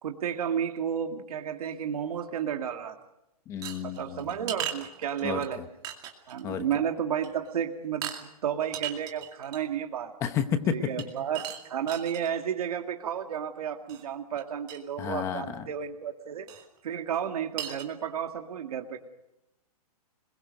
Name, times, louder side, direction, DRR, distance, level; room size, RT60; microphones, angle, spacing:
voice 1, 0.0-3.0 3.8-5.6 6.3-8.1 8.4-10.1 10.7-16.5 16.8-19.0, right 8 dB, 65° right, 5 dB, 2.1 m, -32 dB
voice 2, 3.5-4.3 5.2-5.6 6.4-6.6 10.2-10.8 15.0-15.6, left 8 dB, 15° left, 10 dB, 1.0 m, -31 dB
sound 1, 3.6-5.5 5.8-6.4 6.7-6.9 7.2-7.5 8.0-8.2 8.6-9.7 11.0-12.3 13.9-14.0 14.4-14.5 14.7-14.8 16.5-16.7 17.1-17.2 17.6-17.9, right 10 dB, 20° right, 2.4 m, -37 dB
26.5 x 22.0 x 6.4 m, 0.88 s
hypercardioid pair, 175°, 20 cm